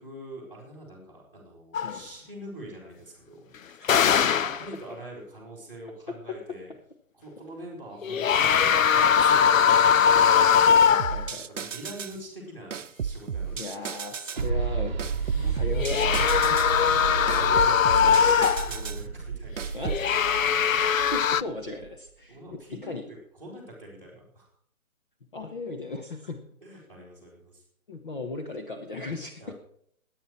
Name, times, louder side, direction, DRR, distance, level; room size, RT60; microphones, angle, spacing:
voice 1, 0.0-3.5 4.0-6.7 7.1-10.3 11.3-13.7 17.0-19.5 22.3-24.5 26.6-27.6 29.4-29.5, right 1 dB, 5° left, -5 dB, 2.6 m, -44 dB
sound 1, 1.7-2.0 3.8-4.7 8.0-11.3 15.7-18.8 19.9-21.4, left 7 dB, 65° left, 0.6 m, -21 dB
voice 2, 10.7-11.5 13.5-16.6 19.7-20.2 20.9-23.0 25.3-26.4 27.9-29.5, left 3 dB, 35° left, 3 dB, 1.1 m, -37 dB
sound 2, 11.0-12.2 12.7-14.5 15.0-16.8 17.3-19.0 19.6-20.1, right 7 dB, 60° right, 0.8 m, -34 dB
sound 3, 14.4-21.9, right 5 dB, 35° right, 1.0 m, -32 dB
20.0 x 9.1 x 4.4 m, 0.66 s
hypercardioid pair, 170°, 43 cm